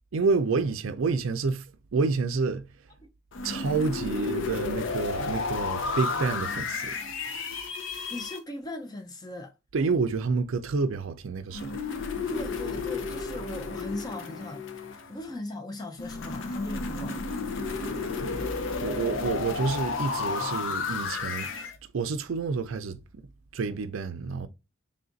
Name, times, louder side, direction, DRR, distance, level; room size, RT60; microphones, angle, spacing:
voice 1, 0.1-1.7 1.9-2.6 3.4-7.0 9.7-11.8 18.2-18.5 18.8-23.0 23.5-24.5, right 4 dB, 80° right, 0.5 m, -29 dB
sound 1, 3.3-8.4 11.5-15.3 16.0-21.7, left 4 dB, 70° left, 0.6 m, -32 dB
voice 2, 7.5-9.5 12.3-17.2, left 1 dB, 20° left, 0.4 m, -39 dB
3.5 x 2.4 x 3.9 m
head